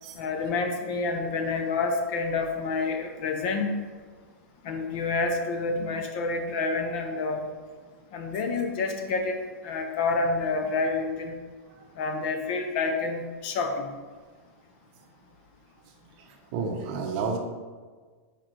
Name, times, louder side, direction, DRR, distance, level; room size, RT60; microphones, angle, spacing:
voice 1, 0.2-3.7 4.6-7.5 8.1-11.4 12.0-13.9, left 3 dB, 40° left, 5 dB, 0.6 m, -28 dB
voice 2, 16.5-17.4, right 5 dB, 35° right, 3 dB, 0.7 m, -30 dB
5.1 x 4.7 x 4.4 m, 1.5 s
supercardioid pair, 165°, 8 cm